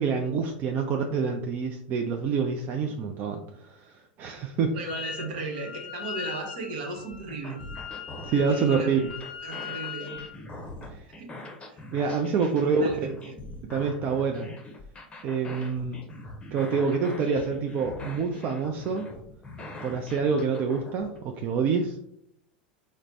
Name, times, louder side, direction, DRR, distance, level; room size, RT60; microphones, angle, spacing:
voice 1, 0.0-3.9 4.2-4.8 8.3-9.1 10.9-11.1 11.9-12.8 13.6-14.5 15.2-16.0 16.5-19.1 19.8-22.0, right 5 dB, 40° right, 4 dB, 0.4 m, -27 dB
voice 2, 4.7-7.6 8.3-9.0 9.4-10.1 11.2-11.3 11.7-11.8 12.2-13.4, right 3 dB, 65° right, 2 dB, 0.9 m, -36 dB
Wind instrument woodwind instrument, 4.9-5.3 5.5-10.4, left 8 dB, 85° left, 0.4 m, -39 dB
sound 1, 7.0-21.2, left 2 dB, 20° left, 0.7 m, -43 dB
3.2 x 2.1 x 3.8 m, 0.72 s
hypercardioid pair, 90°, 5 cm